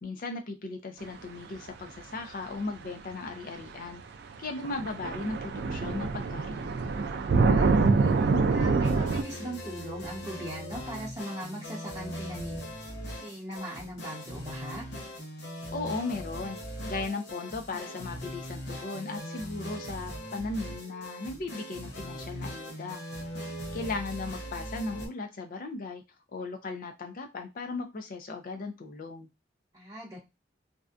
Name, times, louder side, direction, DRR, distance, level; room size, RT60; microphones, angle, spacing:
voice 1, 0.0-4.0 4.4-6.8 15.7-16.6 16.8-23.0 23.7-26.0 26.3-29.3, left 3 dB, 50° left, 6 dB, 0.4 m, -37 dB
sound 1, 3.1-3.2 4.3-4.4 4.6-9.2, right 4 dB, 65° right, 0.3 m, -25 dB
voice 2, 7.4-8.2 8.5-12.6 13.2-14.8 29.7-30.2, right 1 dB, 20° right, -6 dB, 0.8 m, -39 dB
sound 2, 8.8-25.1, equal, 65° left, 0.8 m, -40 dB
2.6 x 2.2 x 2.4 m, 0.24 s
head